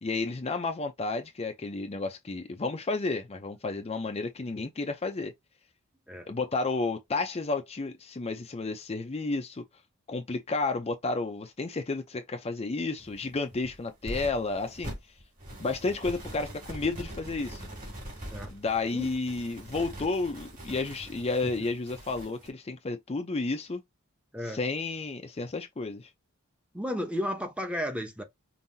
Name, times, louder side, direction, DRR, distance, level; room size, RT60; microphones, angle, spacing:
voice 1, 0.0-5.3 6.3-9.6 10.1-14.9 15.6-17.6 18.5-23.8 24.4-26.1, left 3 dB, 30° left, 0.5 m, -31 dB
sound 1, 13.0-22.5, right 1 dB, 40° right, 2.2 m, -43 dB
voice 2, 26.7-28.2, equal, 5° right, 0.8 m, -33 dB
5.5 x 2.6 x 2.7 m
head